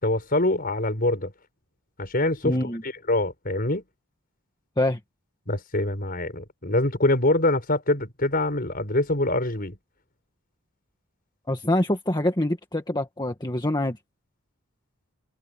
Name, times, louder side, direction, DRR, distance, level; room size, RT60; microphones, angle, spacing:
voice 1, 0.0-1.3 2.0-2.6 3.1-3.8 5.5-9.8, left 2 dB, 40° left, 5.9 m, -24 dB
voice 2, 2.4-2.8 4.8-5.0 11.5-14.0, left 1 dB, 20° left, 1.9 m, -25 dB
head